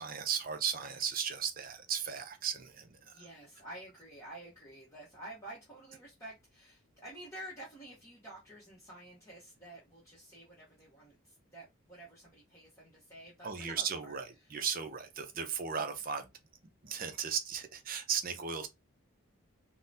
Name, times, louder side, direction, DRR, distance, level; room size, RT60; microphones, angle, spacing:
voice 1, 0.0-3.2 13.4-16.3 16.8-18.7, right 7 dB, 40° right, 0.5 m, -36 dB
voice 2, 3.1-14.2, right 1 dB, 15° left, 1.0 m, -50 dB
3.7 x 2.1 x 2.6 m
head